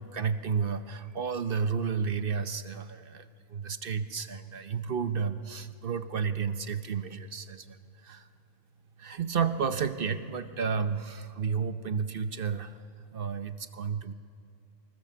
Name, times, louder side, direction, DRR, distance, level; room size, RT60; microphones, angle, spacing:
voice 1, 0.0-8.3 9.0-12.8 13.1-14.1, right 6 dB, 45° right, 10 dB, 0.8 m, -32 dB
26.0 x 21.0 x 6.9 m, 2.6 s
omnidirectional pair, 1.5 m